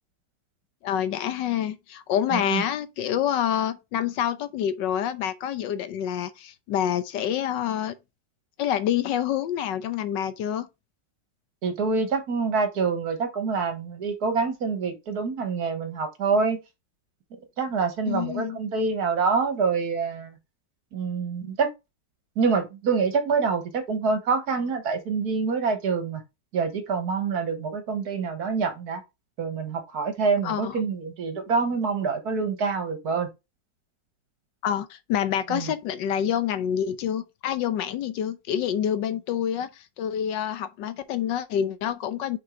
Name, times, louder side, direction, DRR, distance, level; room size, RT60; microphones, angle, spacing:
voice 1, 0.8-8.0 8.6-10.7 18.0-18.6 30.4-30.8 34.6-42.4, left 10 dB, 80° left, 1.4 m, -27 dB
voice 2, 2.3-2.6 11.6-16.6 17.6-20.4 20.9-21.7 22.4-26.2 26.5-29.0 29.4-33.3 35.5-35.7, right 5 dB, 60° right, 1.7 m, -26 dB
6.0 x 4.7 x 3.7 m
omnidirectional pair, 1.9 m